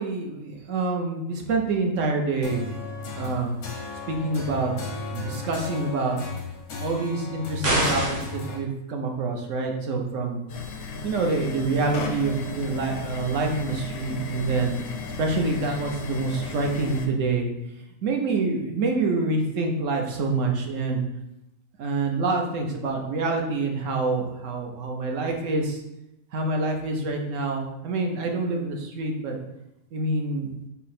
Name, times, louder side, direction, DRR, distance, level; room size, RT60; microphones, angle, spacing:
voice 1, 0.0-2.7 3.2-3.6 4.1-4.7 5.1-6.2 6.8-10.5 11.0-14.8 15.2-17.5 18.0-21.0 21.8-25.8 26.3-29.3 29.9-30.5, right 3 dB, 65° right, 2 dB, 1.0 m, -26 dB
sound 1, 2.4-8.6, left 3 dB, 85° left, 1.3 m, -35 dB
sound 2, 7.6-8.4, right 1 dB, 45° right, 1.2 m, -24 dB
sound 3, 10.5-17.1, left 4 dB, 60° left, 0.7 m, -34 dB
5.8 x 2.1 x 4.2 m, 0.89 s
omnidirectional pair, 1.5 m